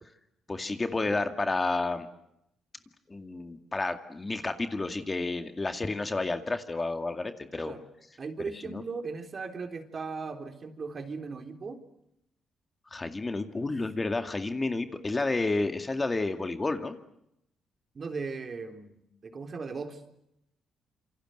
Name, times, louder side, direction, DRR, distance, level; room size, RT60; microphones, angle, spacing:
voice 1, 0.5-2.1 3.1-7.7 8.6-8.8 12.9-17.0, left 3 dB, 25° left, 7 dB, 2.1 m, -30 dB
voice 2, 8.2-11.8 13.6-13.7 17.9-20.0, right 4 dB, 40° right, 6 dB, 3.8 m, -38 dB
28.0 x 25.0 x 8.0 m, 0.81 s
cardioid pair, 90°, 0 cm